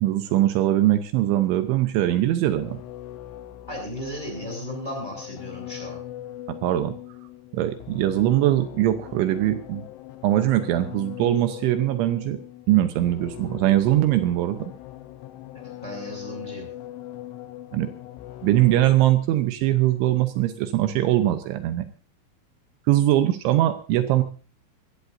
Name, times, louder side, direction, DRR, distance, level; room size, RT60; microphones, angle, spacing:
voice 1, 0.0-2.8 6.5-6.9 7.5-9.9 10.2-12.4 12.7-14.7 17.7-17.9 18.4-21.9 22.9-24.2, right 14 dB, 80° right, 8 dB, 3.2 m, -21 dB
sound 1, 2.6-19.2, left 14 dB, 80° left, 3.3 m, -40 dB
voice 2, 3.7-6.0 15.8-16.7, equal, 10° left, 1 dB, 6.7 m, -35 dB
22.0 x 16.5 x 2.7 m, 0.37 s
omnidirectional pair, 5.5 m